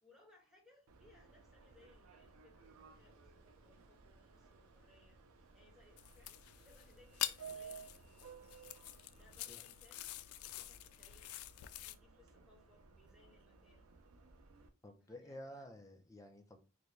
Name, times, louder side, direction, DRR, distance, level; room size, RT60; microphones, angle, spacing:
voice 1, 0.0-8.6 9.2-11.3 11.7-13.9 15.0-15.7, left 2 dB, ahead, -2 dB, 1.3 m, -68 dB
Subway metro underground, 0.9-14.7, right 6 dB, 85° right, 0.6 m, -58 dB
sound 1, 6.0-11.9, left 14 dB, 90° left, 0.3 m, -46 dB
voice 2, 14.8-16.6, equal, 15° left, 4 dB, 0.6 m, -52 dB
4.0 x 2.3 x 3.1 m, 0.31 s
head